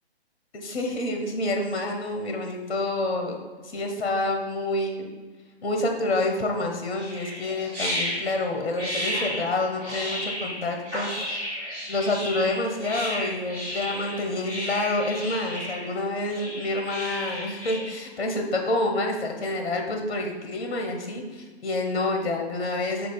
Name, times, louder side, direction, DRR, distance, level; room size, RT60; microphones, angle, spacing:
voice 1, 0.5-3.4 3.6-5.1 5.6-11.4 11.9-23.1, left 2 dB, 60° left, 3 dB, 1.1 m, -28 dB
sound 1, 6.9-17.9, left 1 dB, 5° right, 1.2 m, -33 dB
5.1 x 4.0 x 5.2 m, 1.4 s
hypercardioid pair, 180°, 33 cm